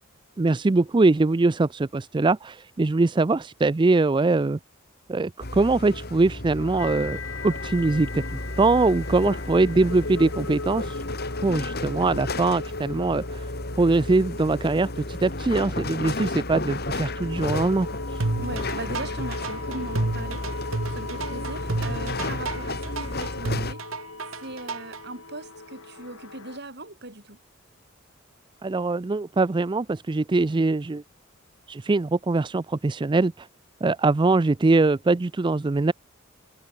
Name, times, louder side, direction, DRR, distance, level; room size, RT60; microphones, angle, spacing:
voice 1, 0.4-4.6 5.1-7.2 7.4-8.2 8.6-11.0 11.4-13.5 13.8-18.2 28.6-31.0 31.7-33.5 33.8-35.9, right 3 dB, 25° right, 0.4 m, -22 dB
sound 1, 5.4-23.7, left 2 dB, 50° left, 3.6 m, -33 dB
sound 2, 6.8-26.6, left 3 dB, 85° left, 3.1 m, -39 dB
sound 3, 18.2-25.0, right 2 dB, 85° right, 1.5 m, -30 dB
voice 2, 18.4-23.8 24.4-27.4, right 2 dB, 55° right, 6.6 m, -39 dB
head